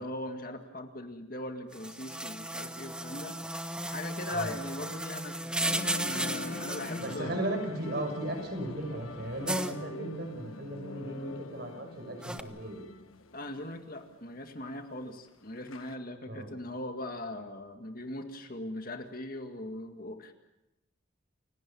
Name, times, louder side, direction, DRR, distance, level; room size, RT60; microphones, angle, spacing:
voice 1, 0.0-7.4 13.3-20.3, left 1 dB, 45° left, 5 dB, 2.0 m, -40 dB
sound 1, 1.7-7.2 9.5-9.7 12.2-12.4, right 1 dB, 5° right, 0.8 m, -34 dB
sound 2, 5.6-16.0, left 3 dB, 85° left, 1.3 m, -45 dB
voice 2, 7.0-12.8 16.3-16.5, right 1 dB, 50° right, 4 dB, 6.2 m, -36 dB
29.5 x 17.0 x 7.1 m, 0.94 s
head